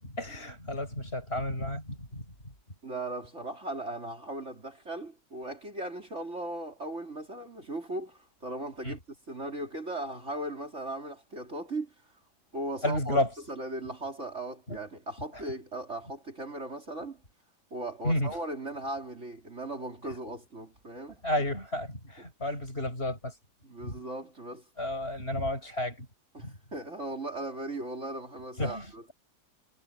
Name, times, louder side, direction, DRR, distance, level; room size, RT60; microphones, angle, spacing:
voice 1, 0.0-2.2 8.8-9.0 12.8-13.3 14.7-14.8 15.3-15.4 18.0-18.4 21.2-23.3 23.8-24.0 24.8-26.1 26.4-26.6 28.6-28.9, left 1 dB, 35° left, 7.7 m, -31 dB
voice 2, 2.8-9.0 9.3-12.1 12.5-13.2 13.5-17.2 17.7-21.2 22.4-22.5 23.6-24.6 26.3-29.0, right 1 dB, 40° right, 3.7 m, -38 dB
omnidirectional pair, 1.9 m